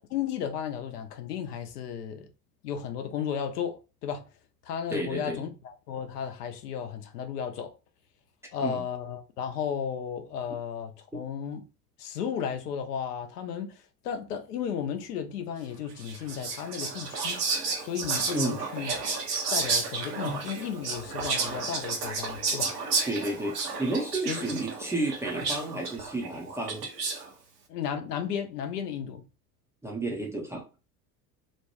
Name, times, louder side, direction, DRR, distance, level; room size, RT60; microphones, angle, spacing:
voice 1, 0.1-2.3 2.6-4.2 4.7-5.5 5.9-7.7 8.5-11.6 12.0-17.4 17.8-18.9 19.5-22.7 24.3-24.6 27.7-29.2, left 8 dB, 75° left, 0.6 m, -34 dB
voice 2, 4.9-5.4 8.6-8.9 11.1-11.2 18.3-18.6 23.1-26.9 29.8-30.7, right 2 dB, 5° right, 0.4 m, -32 dB
Whispering, 16.0-27.3, right 4 dB, 75° right, 0.9 m, -32 dB
2.9 x 2.1 x 2.8 m
figure-of-eight pair, 65°, 48 cm